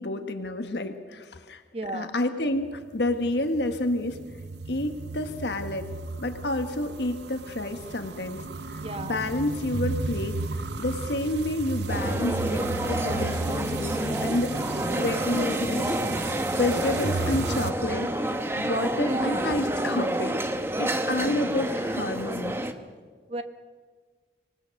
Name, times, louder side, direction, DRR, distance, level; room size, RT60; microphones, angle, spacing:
voice 1, 0.0-1.6 1.9-4.2 4.7-5.9 6.2-16.0 16.3-22.6, left 1 dB, 75° left, 7 dB, 1.4 m, -30 dB
voice 2, 1.7-2.1 8.7-9.3 19.1-19.4 23.3-23.4, right 2 dB, 35° right, 8 dB, 1.2 m, -34 dB
sound 1, 2.6-17.7, right 3 dB, 75° right, 0.8 m, -34 dB
sound 2, 11.9-22.7, right 1 dB, 15° right, 1.0 m, -28 dB
25.5 x 19.0 x 6.5 m, 1.5 s
head